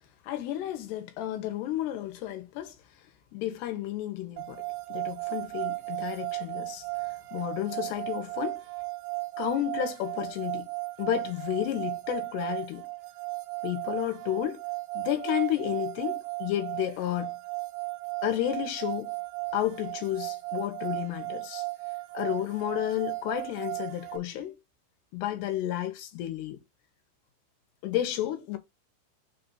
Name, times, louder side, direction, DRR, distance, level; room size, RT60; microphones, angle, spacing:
voice 1, 0.2-2.7 3.3-4.6 4.9-6.8 7.3-8.6 9.4-10.7 11.0-12.9 13.6-14.6 14.9-17.4 18.2-19.1 19.5-21.7 22.1-24.5 25.1-26.6 27.8-28.6, left 13 dB, 85° left, 3.2 m, -31 dB
sound 1, 4.4-24.2, right 26 dB, 90° right, 2.7 m, -35 dB
6.5 x 2.7 x 5.5 m
omnidirectional pair, 4.6 m